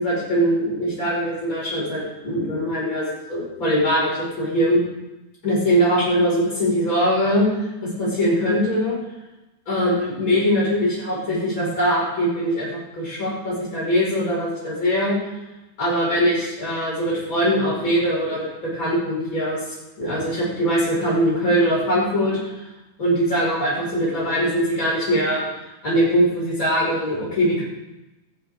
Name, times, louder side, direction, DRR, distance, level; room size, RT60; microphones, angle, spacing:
voice 1, 0.0-4.8 5.4-7.7 8.0-9.0 9.7-12.7 12.9-15.2 15.8-18.5 18.7-19.6 20.0-22.5 23.0-25.4 25.8-27.6, equal, 25° left, -6 dB, 5.5 m, -21 dB
13.5 x 10.5 x 3.7 m, 1.0 s
omnidirectional pair, 3.9 m